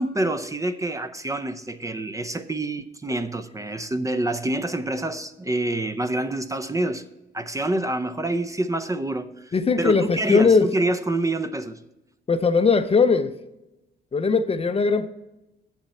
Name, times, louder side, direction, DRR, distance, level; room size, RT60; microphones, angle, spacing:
voice 1, 0.0-7.0 7.3-11.8, right 2 dB, 15° right, 0.6 m, -27 dB
voice 2, 9.5-10.7 12.3-13.3 14.1-15.1, left 4 dB, 30° left, 0.6 m, -19 dB
7.7 x 7.2 x 5.4 m
cardioid pair, 90°, 20 cm